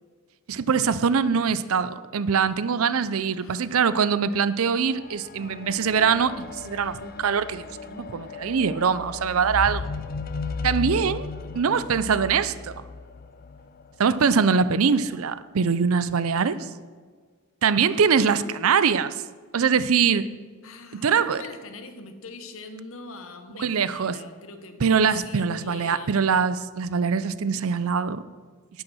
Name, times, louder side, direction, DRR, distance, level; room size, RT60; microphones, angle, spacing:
voice 1, 0.5-7.6 7.9-9.9 10.6-11.3 11.5-12.8 14.0-16.6 17.6-19.1 19.5-20.3 20.9-21.4 23.6-24.1 24.8-28.2, right 6 dB, 70° right, 15 dB, 0.5 m, -23 dB
voice 2, 3.4-3.8 11.4-11.7 16.4-16.7 18.1-18.8 20.6-24.8 25.2-26.3, left 2 dB, 65° left, 8 dB, 1.1 m, -42 dB
sound 1, 4.9-14.4 15.2-15.3, left 4 dB, 40° left, 0.5 m, -36 dB
10.5 x 9.0 x 6.2 m, 1.5 s
head